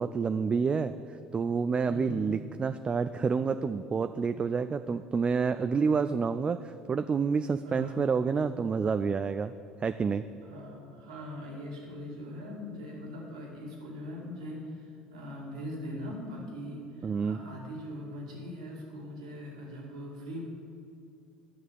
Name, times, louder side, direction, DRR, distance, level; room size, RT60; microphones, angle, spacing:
voice 1, 0.0-9.5 9.8-10.3 17.0-17.4, right 5 dB, 30° right, 10 dB, 0.3 m, -29 dB
voice 2, 1.9-2.2 7.6-8.1 10.4-20.4, left 1 dB, 80° right, -2 dB, 2.1 m, -41 dB
10.0 x 6.2 x 7.1 m, 2.7 s
hypercardioid pair, 60°, 3 cm